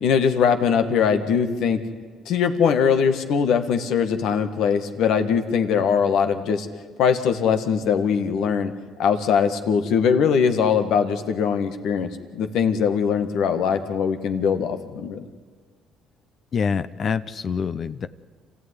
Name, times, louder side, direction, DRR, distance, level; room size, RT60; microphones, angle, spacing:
voice 1, 0.0-1.8 2.3-6.7 7.0-8.7 9.0-15.2, left 7 dB, 75° left, 8 dB, 1.8 m, -21 dB
voice 2, 16.5-18.1, left 6 dB, 45° left, 14 dB, 0.8 m, -25 dB
27.0 x 15.5 x 9.9 m, 1.5 s
cardioid pair, 85°, 0 cm